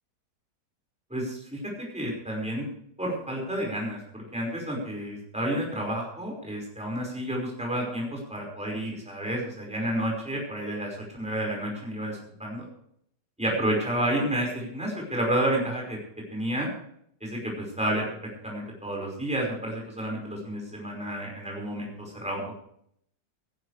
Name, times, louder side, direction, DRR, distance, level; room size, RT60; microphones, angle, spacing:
voice 1, 1.1-1.6 1.9-2.7 3.0-12.7 13.4-16.0 16.3-16.7 17.2-18.1 18.4-22.4, right 1 dB, 5° right, -2 dB, 5.2 m, -30 dB
17.0 x 15.5 x 3.3 m, 0.70 s
omnidirectional pair, 1.9 m